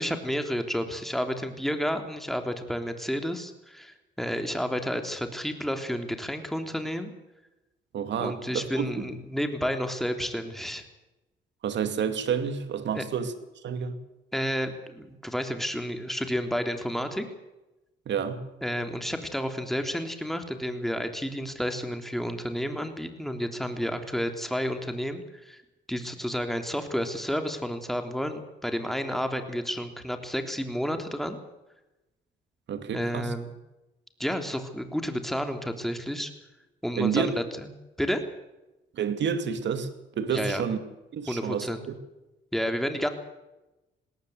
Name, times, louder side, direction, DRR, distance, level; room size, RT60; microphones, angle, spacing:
voice 1, 0.0-7.1 8.2-10.8 12.9-13.0 14.3-17.3 18.6-25.6 25.9-31.4 32.9-33.5 34.2-36.3 36.8-37.7 38.0-38.2 40.3-40.6 41.3-41.9 42.5-43.1, equal, ahead, 6 dB, 3.3 m, -31 dB
voice 2, 7.9-9.1 11.6-13.3 13.6-14.0 18.1-18.5 32.7-33.3 37.0-37.3 39.0-40.8 41.1-41.7, right 7 dB, 65° right, 10 dB, 2.6 m, -29 dB
20.5 x 17.5 x 8.1 m, 1.0 s
cardioid pair, 90°, 20 cm